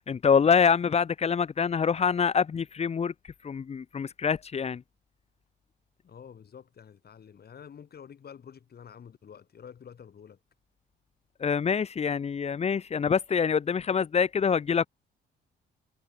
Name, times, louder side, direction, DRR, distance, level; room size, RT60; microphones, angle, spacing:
voice 1, 0.0-3.1 3.4-4.8 11.4-14.9, left 6 dB, 30° left, 0.6 m, -25 dB
voice 2, 6.0-10.4, left 7 dB, 50° left, 7.7 m, -48 dB
cardioid pair, 90°, 20 cm